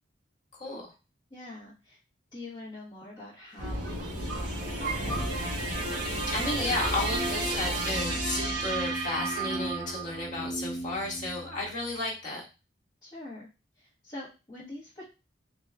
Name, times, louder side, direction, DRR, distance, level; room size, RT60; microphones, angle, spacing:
voice 1, 0.6-0.9 6.3-12.4, left 2 dB, 40° left, -4 dB, 1.3 m, -33 dB
voice 2, 1.3-2.0 2.3-5.2 13.0-13.5 13.8-15.1, left 2 dB, 25° left, -8 dB, 1.0 m, -44 dB
sound 1, 3.6-11.9, right 2 dB, 40° right, 1.9 m, -34 dB
sound 2, 3.6-9.2, equal, 85° right, 1.0 m, -35 dB
3.5 x 2.3 x 3.2 m, 0.30 s
head